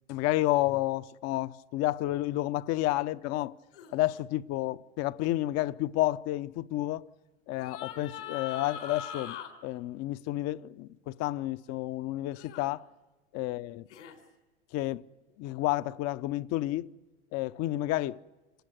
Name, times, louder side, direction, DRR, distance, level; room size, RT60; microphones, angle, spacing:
voice 1, 0.1-3.5 3.9-7.1 7.5-9.4 9.6-12.9 13.3-13.9 14.7-15.0 15.4-16.9 17.3-18.2, left 16 dB, 50° left, 0.8 m, -30 dB
sound 1, 3.7-4.0 7.6-9.5 12.4-12.7 13.9-14.2, left 8 dB, 80° left, 3.9 m, -41 dB
28.0 x 18.5 x 8.1 m
hypercardioid pair, 100°, 34 cm